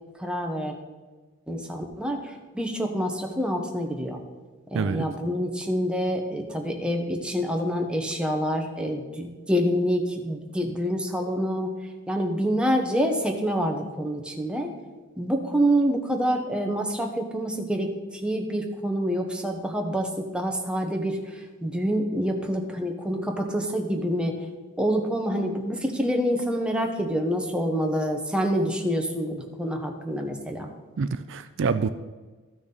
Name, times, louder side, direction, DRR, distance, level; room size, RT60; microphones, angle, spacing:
voice 1, 0.2-0.8 1.5-4.2 4.7-11.7 12.1-14.7 15.2-24.5 24.8-30.7, equal, 5° right, 2 dB, 1.0 m, -27 dB
voice 2, 4.7-5.0 31.0-31.9, right 5 dB, 65° right, 11 dB, 0.4 m, -26 dB
13.5 x 6.2 x 4.0 m, 1.3 s
head